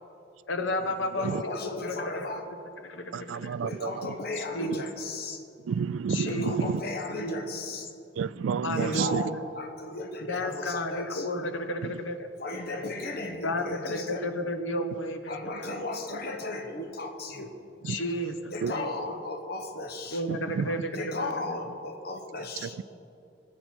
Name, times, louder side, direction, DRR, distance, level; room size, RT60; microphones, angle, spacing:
voice 1, 0.5-1.3 1.6-2.3 2.8-3.6 4.4-4.8 6.1-6.8 7.2-7.4 8.6-9.4 10.3-12.3 13.4-15.8 17.8-19.2 20.1-21.6, left 1 dB, 80° left, 1.0 m, -32 dB
voice 2, 1.2-2.5 3.6-5.4 6.2-7.9 8.8-11.3 12.4-14.2 15.3-17.6 18.5-20.2 20.9-22.8, left 2 dB, 55° left, 1.0 m, -35 dB
voice 3, 3.1-4.1 5.7-6.8 8.2-9.3 17.8-18.0 18.6-18.7 20.3-20.7 22.6-22.8, right 6 dB, 85° right, 0.3 m, -30 dB
21.0 x 7.7 x 4.4 m
head